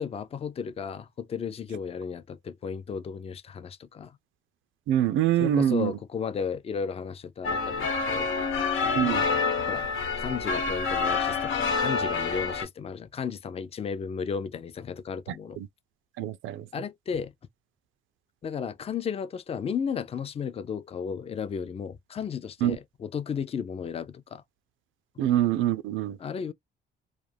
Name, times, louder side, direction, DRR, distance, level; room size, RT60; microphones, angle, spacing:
voice 1, 0.0-4.1 5.4-8.3 8.8-9.9 10.2-15.6 16.7-17.3 18.4-24.4 26.2-26.5, left 6 dB, 30° left, 0.4 m, -34 dB
voice 2, 4.9-6.0 8.9-9.3 15.3-15.7 16.2-16.6 22.6-22.8 25.2-26.2, right 11 dB, 80° right, 0.4 m, -25 dB
sound 1, 7.4-12.6, left 4 dB, 85° left, 1.1 m, -27 dB
2.4 x 2.1 x 3.2 m
cardioid pair, 90°, 20 cm